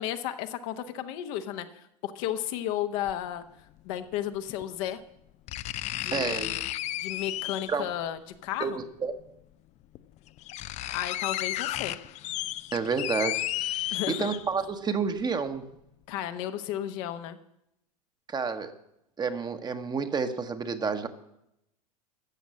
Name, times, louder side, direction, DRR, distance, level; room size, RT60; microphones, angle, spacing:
voice 1, 0.0-3.4 3.8-5.0 6.0-6.6 7.0-8.8 10.9-12.0 13.9-14.3 16.1-17.4, left 11 dB, 55° left, 8 dB, 1.0 m, -33 dB
sound 1, 3.1-3.2 4.6-4.7 5.5-7.9 9.2-9.3 9.9-10.0 10.3-14.7 15.1-15.2, left 15 dB, 35° left, 0.4 m, -33 dB
voice 2, 6.1-6.5 7.7-7.9 8.6-9.1 12.7-15.7 18.3-18.7 19.2-21.1, right 5 dB, 20° right, 8 dB, 1.1 m, -30 dB
13.5 x 7.2 x 7.6 m, 0.82 s
hypercardioid pair, 85°, 20 cm